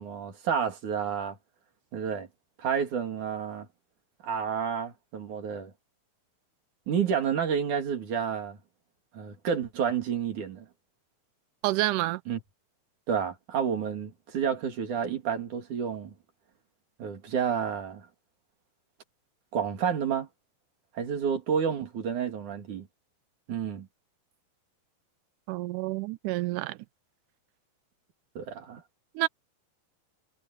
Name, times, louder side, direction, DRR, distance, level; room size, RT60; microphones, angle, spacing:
voice 1, 0.0-1.4 1.9-2.3 2.6-3.7 4.2-5.7 6.9-8.6 9.1-10.7 12.3-12.4 13.1-16.1 17.0-18.1 19.5-20.3 21.0-22.9 23.5-23.9 28.4-28.8, right 7 dB, 60° right, 3.8 m, -30 dB
voice 2, 11.6-12.2 25.5-26.8 29.2-29.3, right 18 dB, 80° right, 2.0 m, -28 dB
omnidirectional pair, 4.1 m